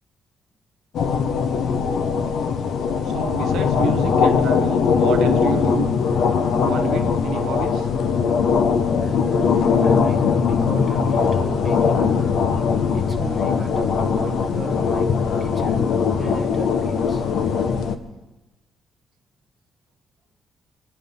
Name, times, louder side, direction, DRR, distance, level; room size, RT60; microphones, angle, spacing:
sound 1, 0.9-18.0, left 6 dB, 65° left, 1.0 m, -20 dB
voice 1, 3.0-5.9 6.6-7.9, right 9 dB, 75° right, 4 dB, 0.8 m, -30 dB
voice 2, 8.9-12.2 12.9-15.1 15.4-15.9 16.2-17.2, right 3 dB, 15° right, 2 dB, 1.4 m, -34 dB
25.0 x 9.9 x 5.4 m, 1.1 s
cardioid pair, 150°, 0 cm